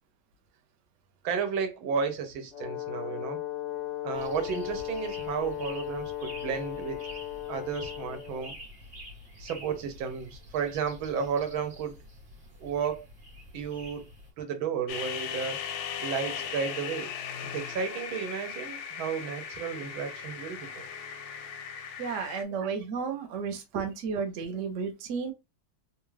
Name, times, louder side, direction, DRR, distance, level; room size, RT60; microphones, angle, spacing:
voice 1, 1.2-3.4 4.0-7.0 7.5-8.6 9.4-12.0 12.6-13.0 13.5-14.1 14.4-15.6 16.0-17.1 17.5-20.8 22.6-22.7 23.7-23.9, right 6 dB, 80° right, 1.6 m, -33 dB
Brass instrument, 2.5-8.5, left 13 dB, 55° left, 0.8 m, -36 dB
sound 1, 4.1-14.3, equal, 35° right, 1.1 m, -48 dB
sound 2, 14.9-22.4, left 7 dB, 85° left, 1.4 m, -38 dB
voice 2, 22.0-25.3, right 5 dB, 60° right, 0.8 m, -33 dB
3.7 x 2.4 x 3.1 m
omnidirectional pair, 2.2 m